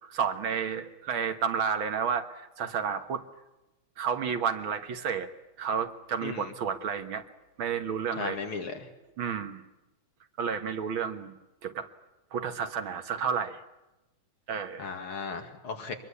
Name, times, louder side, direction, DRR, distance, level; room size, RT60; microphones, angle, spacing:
voice 1, 0.0-3.2 4.0-5.3 5.6-7.2 7.6-8.4 9.2-9.6 10.4-11.4 11.6-11.9 12.3-13.6 14.5-14.9, right 7 dB, 70° right, 8 dB, 2.2 m, -31 dB
voice 2, 6.2-6.5 8.2-8.9 14.8-15.9, left 5 dB, 80° left, 5 dB, 3.2 m, -36 dB
24.5 x 21.5 x 8.4 m, 0.96 s
omnidirectional pair, 2.3 m